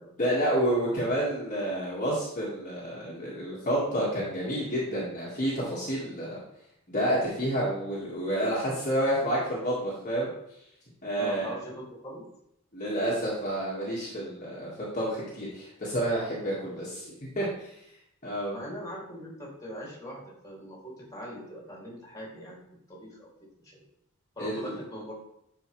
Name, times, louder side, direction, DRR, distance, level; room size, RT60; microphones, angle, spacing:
voice 1, 0.2-6.4 6.9-10.3 11.0-11.5 12.7-17.7 18.2-18.7 24.4-24.8, right 1 dB, 35° left, -7 dB, 1.9 m, -29 dB
voice 2, 11.2-12.2 18.4-23.3 23.7-23.8 24.3-25.1, equal, 15° left, -3 dB, 2.7 m, -41 dB
10.5 x 4.9 x 3.2 m, 0.78 s
head